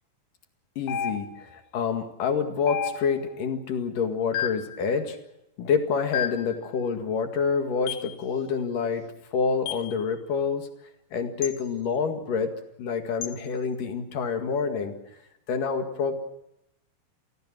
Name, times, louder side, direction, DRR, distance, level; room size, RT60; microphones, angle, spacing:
voice 1, 0.8-5.2 5.6-9.1 9.3-10.7 11.1-15.0 15.5-16.1, left 5 dB, 70° left, 5 dB, 3.5 m, -27 dB
sound 1, 0.9-1.6 2.7-3.3 4.3-4.8 6.1-6.6 7.9-8.1 9.7-9.9 11.4-11.6 13.2-13.4, left 8 dB, 85° left, 1.2 m, -32 dB
28.5 x 17.0 x 7.6 m, 0.84 s
omnidirectional pair, 4.1 m